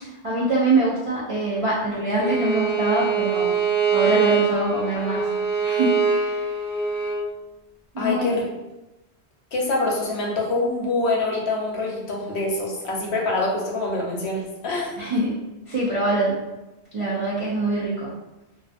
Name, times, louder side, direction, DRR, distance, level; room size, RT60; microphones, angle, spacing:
voice 1, 0.2-3.5 3.9-5.2 5.6-6.4 7.9-8.3 15.0-15.4 15.7-16.4 16.9-18.1, right 2 dB, 55° right, -7 dB, 0.3 m, -24 dB
Bowed string instrument, 2.2-7.2, right 5 dB, 20° right, 1.1 m, -23 dB
voice 2, 8.0-8.4 9.5-15.0, left 2 dB, 75° left, -2 dB, 0.9 m, -25 dB
2.5 x 2.3 x 2.4 m, 0.99 s
omnidirectional pair, 1.1 m